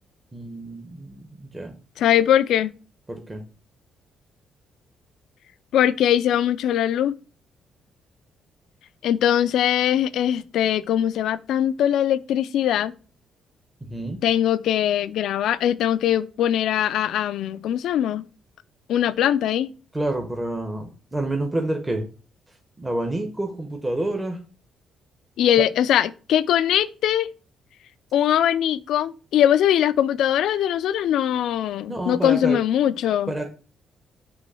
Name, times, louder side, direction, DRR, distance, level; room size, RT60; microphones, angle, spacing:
voice 1, 0.3-1.8 3.1-3.4 13.8-14.2 19.9-22.0 22.8-24.4 25.6-25.7 31.9-32.6 33.3-33.5, right 1 dB, 15° right, 0.9 m, -28 dB
voice 2, 2.0-2.7 5.7-7.1 9.0-12.9 14.2-18.2 18.9-19.7 25.4-27.3 28.1-33.3, left 10 dB, 80° left, 0.4 m, -21 dB
6.1 x 3.1 x 5.5 m
cardioid pair, 90°, 0 cm